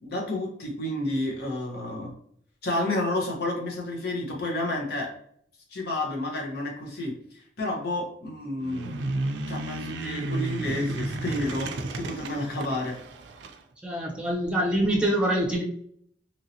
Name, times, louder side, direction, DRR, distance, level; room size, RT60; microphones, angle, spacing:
voice 1, 0.0-2.1 2.6-5.1 5.7-9.1 9.5-13.0, left 1 dB, 60° left, -1 dB, 0.9 m, -30 dB
sound 1, 8.6-13.6, right 2 dB, 70° right, 0.4 m, -33 dB
voice 2, 13.8-15.6, right 1 dB, 5° right, -2 dB, 0.7 m, -25 dB
2.9 x 2.8 x 2.7 m, 0.65 s
head